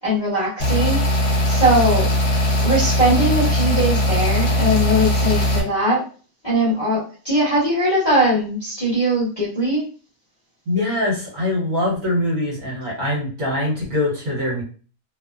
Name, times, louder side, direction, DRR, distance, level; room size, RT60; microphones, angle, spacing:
voice 1, 0.0-1.1 1.4-2.1 2.6-6.0 6.4-9.8, equal, 20° left, -9 dB, 1.1 m, -20 dB
sound 1, 0.6-5.6, equal, 55° left, 1.1 m, -19 dB
voice 2, 10.7-14.6, left 1 dB, 65° right, -4 dB, 1.4 m, -23 dB
2.8 x 2.1 x 2.3 m, 0.38 s
omnidirectional pair, 1.6 m